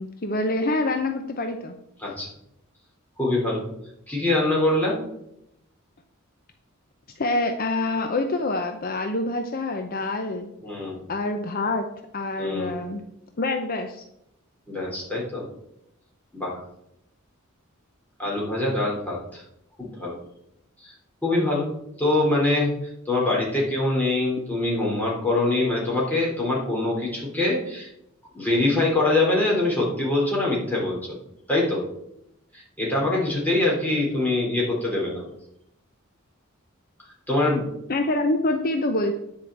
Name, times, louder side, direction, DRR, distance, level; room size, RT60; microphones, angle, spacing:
voice 1, 0.0-1.8 7.2-10.5 11.1-11.9 12.1-13.0 13.4-14.0 37.9-39.1, left 2 dB, 45° left, 5 dB, 0.7 m, -26 dB
voice 2, 3.2-3.6 4.1-5.0 10.6-11.1 12.4-12.8 14.7-15.4 16.3-16.6 18.2-19.4 19.8-20.2 20.8-20.9 21.2-21.7 22.0-22.7 23.1-27.9 28.3-31.2 31.5-31.8 32.5-35.2 37.3-37.7, left 2 dB, 10° left, -4 dB, 3.5 m, -24 dB
10.0 x 5.1 x 7.8 m, 0.80 s
head